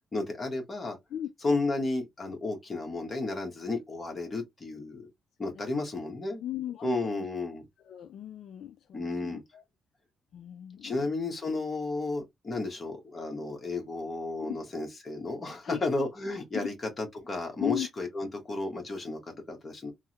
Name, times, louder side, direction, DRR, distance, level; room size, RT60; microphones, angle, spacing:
voice 1, 0.1-1.0 1.4-5.0 5.4-6.4 6.8-7.7 8.9-9.4 10.8-19.9, left 2 dB, 25° left, 1.2 m, -33 dB
voice 2, 6.4-7.3 7.8-9.6 10.3-11.1 14.4-14.6 15.6-15.8 16.5-16.7 17.6-17.9, left 11 dB, 65° left, 0.3 m, -36 dB
3.4 x 2.1 x 2.8 m
cardioid pair, 135°, 0 cm